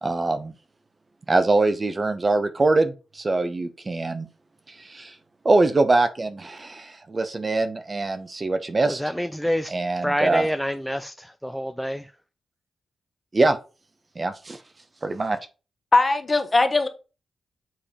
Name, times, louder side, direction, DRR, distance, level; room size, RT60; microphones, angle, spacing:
voice 1, 0.0-0.5 1.3-4.3 4.8-5.1 5.4-9.0 9.7-10.5 13.3-13.6 14.2-14.6 15.0-15.4, right 2 dB, 35° right, 1.0 m, -23 dB
voice 2, 8.9-9.7 10.0-12.0, equal, ahead, 0.5 m, -27 dB
voice 3, 15.9-16.9, left 3 dB, 35° left, 1.3 m, -19 dB
7.6 x 3.5 x 4.3 m
cardioid pair, 65°, 0 cm